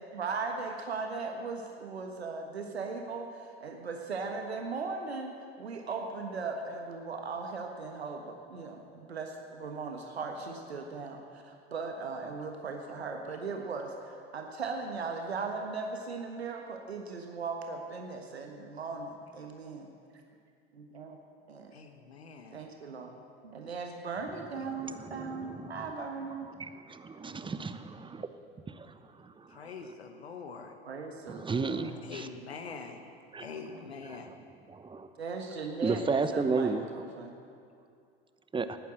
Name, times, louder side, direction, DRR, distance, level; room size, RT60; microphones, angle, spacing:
voice 1, 0.0-19.8 20.7-21.2 21.5-21.7 22.5-23.1 23.4-26.5 30.8-31.9 35.2-37.3, right 4 dB, 80° right, 3 dB, 1.4 m, -38 dB
voice 2, 21.7-22.6 24.6-24.7 29.5-30.7 32.0-33.1 33.4-34.3, left 5 dB, 80° left, 5 dB, 1.3 m, -44 dB
voice 3, 24.8-25.7 26.6-27.9 28.8-28.9 31.3-32.2 33.3-33.5 34.7-35.1 35.8-36.8 38.5-38.8, right 4 dB, 15° right, 10 dB, 1.0 m, -32 dB
19.0 x 9.3 x 7.7 m, 2.4 s
figure-of-eight pair, 75°, 31 cm